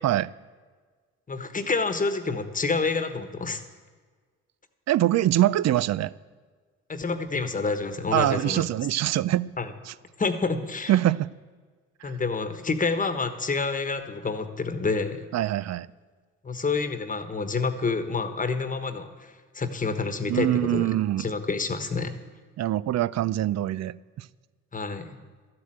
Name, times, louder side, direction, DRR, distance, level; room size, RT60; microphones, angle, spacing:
voice 1, 1.3-3.6 6.9-8.7 9.6-9.7 10.2-10.9 12.0-15.2 16.4-20.9 21.2-22.2 24.7-25.2, left 4 dB, 25° left, 1.2 m, -28 dB
voice 2, 4.9-6.1 8.1-9.5 9.9-10.0 10.9-11.3 15.3-15.9 20.3-21.3 22.6-24.3, right 13 dB, 60° right, 0.5 m, -24 dB
13.0 x 7.7 x 8.8 m
cardioid pair, 90°, 30 cm